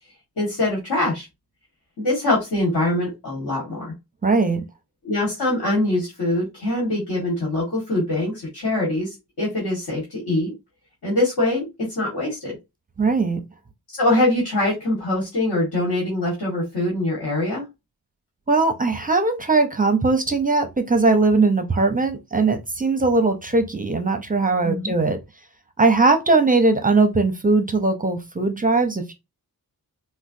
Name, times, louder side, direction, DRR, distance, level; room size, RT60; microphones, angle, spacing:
voice 1, 0.4-1.3 2.0-3.9 5.0-10.5 11.0-12.6 13.9-17.6 24.6-24.9, left 1 dB, 70° left, 1.6 m, -23 dB
voice 2, 4.2-4.6 13.0-13.4 18.5-25.2 25.8-29.1, right 3 dB, 20° right, 0.5 m, -19 dB
4.2 x 2.1 x 2.6 m
wide cardioid pair, 110°, 39 cm